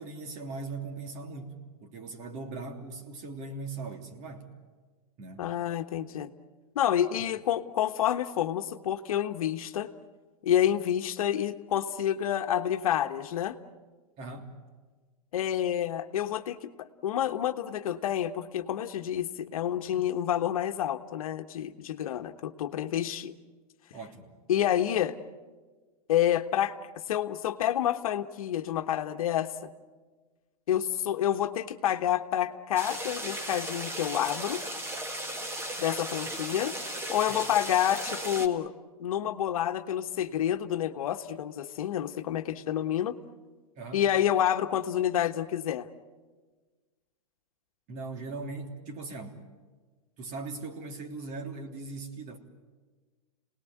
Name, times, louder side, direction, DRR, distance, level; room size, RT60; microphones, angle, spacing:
voice 1, 0.0-4.5 5.2-5.5 14.2-14.5 23.9-24.3 37.3-37.6 43.8-44.0 47.9-49.4 50.2-52.4, right 3 dB, 40° right, 3.2 m, -40 dB
voice 2, 5.4-6.3 6.7-9.9 10.4-13.6 15.3-23.3 24.5-25.2 26.1-26.8 27.1-29.7 30.7-34.6 35.8-36.7 37.1-38.7 39.0-43.2 43.9-45.9, left 10 dB, 65° left, 1.3 m, -28 dB
sound 1, 32.7-38.5, right 1 dB, 15° right, 1.9 m, -36 dB
27.5 x 19.0 x 9.4 m
hypercardioid pair, 120°, 19 cm